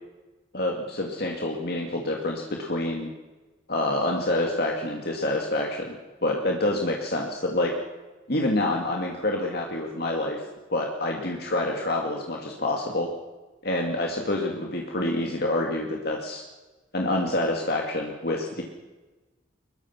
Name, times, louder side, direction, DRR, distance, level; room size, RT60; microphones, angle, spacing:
voice 1, 0.5-3.1 3.7-5.9 6.2-7.7 8.3-10.4 10.7-13.1 13.6-16.4 16.9-18.6, left 1 dB, 50° left, 0 dB, 2.4 m, -27 dB
23.5 x 21.5 x 6.0 m, 1.2 s
head